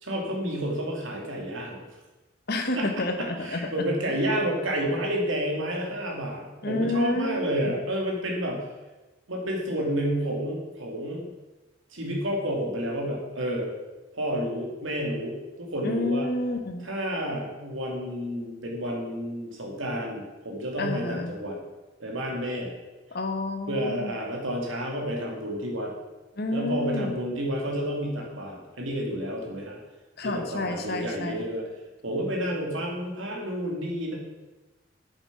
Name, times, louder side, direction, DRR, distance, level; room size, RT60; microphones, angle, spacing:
voice 1, 0.0-1.8 2.8-2.9 3.2-8.7 9.3-11.3 11.9-13.7 14.1-16.3 16.8-21.6 22.0-22.7 23.7-25.9 26.5-29.8 30.2-31.6 32.0-34.2, equal, 80° right, -1 dB, 2.6 m, -30 dB
voice 2, 2.5-3.7 6.6-7.4 7.7-7.8 15.8-16.9 20.8-21.3 23.1-24.1 26.4-27.2 30.2-31.4, left 2 dB, 50° left, 5 dB, 1.2 m, -29 dB
8.1 x 7.3 x 6.1 m, 1.1 s
head